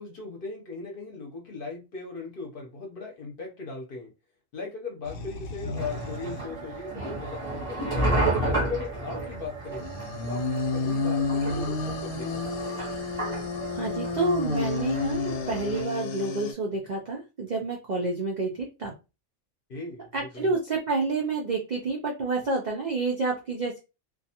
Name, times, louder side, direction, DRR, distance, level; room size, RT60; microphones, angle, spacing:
voice 1, 0.0-4.1 4.5-8.0 8.4-9.9 10.3-12.5 19.7-20.1 20.4-20.5, left 4 dB, 50° left, 0.7 m, -38 dB
sound 1, 5.0-6.4 6.7-6.8 9.7-16.5, left 4 dB, 85° left, 1.0 m, -31 dB
sound 2, 5.8-15.8, right 2 dB, 35° right, 0.6 m, -32 dB
voice 2, 13.7-18.9 20.1-23.8, right 3 dB, 80° right, 0.4 m, -29 dB
2.4 x 2.2 x 2.7 m
omnidirectional pair, 1.4 m